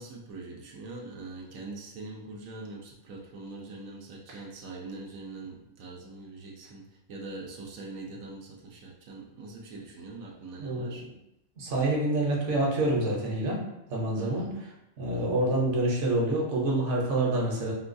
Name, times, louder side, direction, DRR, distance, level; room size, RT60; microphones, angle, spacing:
voice 1, 0.0-11.0 14.2-14.5 15.1-15.5, right 3 dB, 85° right, -1 dB, 1.0 m, -43 dB
voice 2, 11.6-13.6 13.9-14.5 15.0-17.7, right 1 dB, 60° right, -3 dB, 1.1 m, -27 dB
3.7 x 2.3 x 2.5 m, 0.86 s
omnidirectional pair, 1.4 m